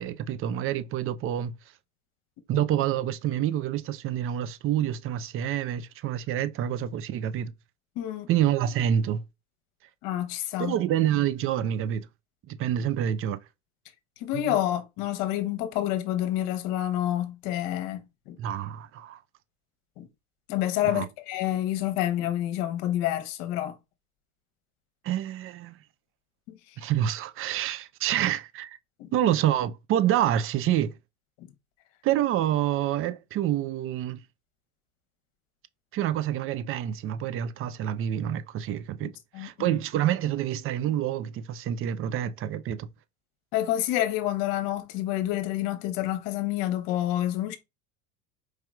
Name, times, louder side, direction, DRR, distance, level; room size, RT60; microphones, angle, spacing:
voice 1, 0.0-1.5 2.5-7.5 8.3-9.2 10.6-12.0 12.5-13.4 14.3-14.6 18.4-19.2 20.8-21.1 25.0-25.8 26.8-28.8 29.1-30.9 32.0-34.2 35.9-42.9, right 11 dB, 35° right, 0.4 m, -27 dB
voice 2, 8.0-8.3 10.0-10.7 14.2-18.4 20.0-20.1 20.5-23.8 26.5-26.8 29.0-29.1 31.4-31.5 39.0-39.8 43.5-47.6, left 13 dB, 65° left, 0.9 m, -28 dB
4.6 x 2.9 x 2.3 m
hypercardioid pair, 95°, 37 cm